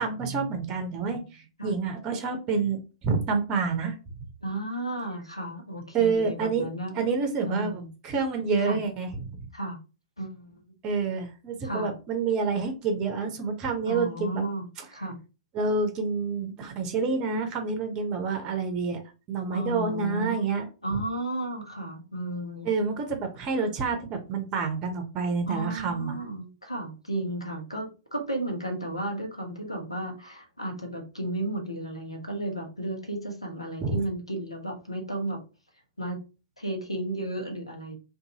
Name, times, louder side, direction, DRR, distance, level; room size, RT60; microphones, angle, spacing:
voice 1, 0.0-3.9 5.9-6.7 6.9-9.4 10.8-14.4 15.5-19.0 19.3-20.7 22.6-26.2 33.8-34.0, right 4 dB, 30° right, 6 dB, 0.6 m, -28 dB
voice 2, 4.4-7.1 7.4-7.9 8.6-8.8 9.5-9.8 10.2-10.6 11.6-11.9 13.9-14.6 14.9-15.2 19.5-20.5 20.8-22.7 25.5-35.4 36.0-36.2 36.6-37.9, right 1 dB, 90° left, 2 dB, 0.7 m, -33 dB
2.6 x 2.3 x 2.8 m, 0.31 s
figure-of-eight pair, 105°, 3 cm